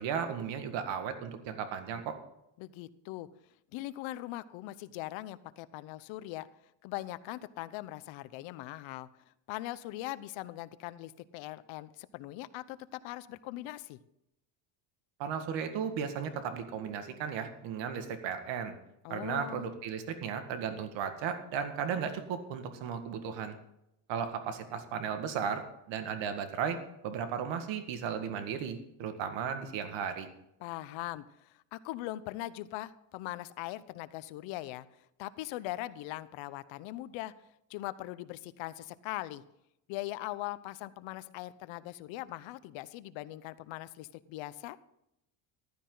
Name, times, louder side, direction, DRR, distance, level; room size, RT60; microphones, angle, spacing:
voice 1, 0.0-2.2 15.2-18.7 19.1-23.6 24.1-26.8 27.0-30.3, right 7 dB, 70° right, 7 dB, 1.9 m, -35 dB
voice 2, 2.6-3.3 3.7-6.5 6.8-9.1 9.5-14.0 19.0-19.7 30.6-34.9 35.2-37.3 37.7-39.4 39.9-44.8, left 16 dB, 75° left, 15 dB, 0.9 m, -41 dB
14.5 x 12.5 x 3.9 m, 0.83 s
cardioid pair, 150°, 47 cm